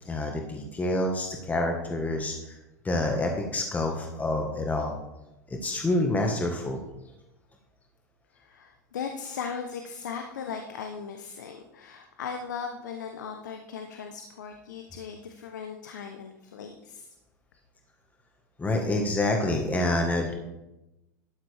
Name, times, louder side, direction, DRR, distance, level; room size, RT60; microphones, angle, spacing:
voice 1, 0.0-2.6 2.8-4.9 5.5-6.8 18.6-20.3, left 2 dB, 15° left, 2 dB, 1.6 m, -27 dB
voice 2, 8.3-17.1, left 6 dB, 85° left, 5 dB, 0.9 m, -38 dB
12.0 x 9.0 x 3.5 m, 0.94 s
hypercardioid pair, 95°, 10 cm